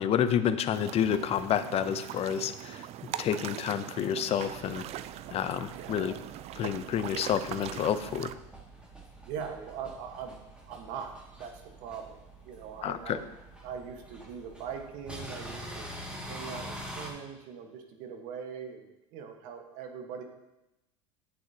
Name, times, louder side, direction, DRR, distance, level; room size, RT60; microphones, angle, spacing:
voice 1, 0.0-2.9 3.2-4.9 5.3-6.1 6.6-8.3 12.8-13.2, left 9 dB, 40° left, 13 dB, 0.6 m, -29 dB
sound 1, 0.7-8.4, right 12 dB, 45° right, 0.4 m, -41 dB
sound 2, 4.4-17.1, equal, 5° right, 2.2 m, -46 dB
voice 2, 5.7-6.2 9.2-12.2 12.4-13.3 13.6-15.9 16.3-20.2, right 7 dB, 60° right, 4 dB, 1.5 m, -41 dB
10.0 x 8.1 x 2.9 m, 0.94 s
hypercardioid pair, 90°, 16 cm